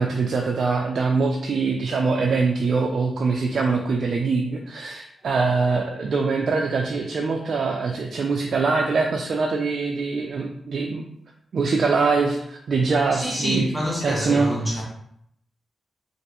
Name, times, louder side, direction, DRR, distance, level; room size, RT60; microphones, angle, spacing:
voice 1, 0.0-11.0 11.5-13.7 14.0-14.5 14.8-14.9, right 4 dB, 65° right, 1 dB, 0.4 m, -23 dB
voice 2, 13.1-14.8, equal, 10° left, -4 dB, 0.9 m, -27 dB
3.0 x 2.6 x 2.9 m, 0.72 s
cardioid pair, 75°, 0 cm